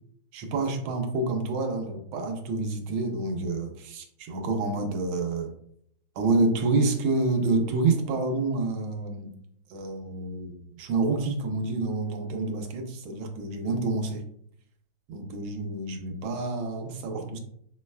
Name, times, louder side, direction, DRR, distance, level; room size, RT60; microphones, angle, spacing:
voice 1, 0.3-5.5 6.2-9.3 9.7-14.2 15.1-17.4, right 3 dB, 90° right, 4 dB, 1.5 m, -28 dB
6.0 x 3.1 x 2.2 m, 0.69 s
omnidirectional pair, 2.2 m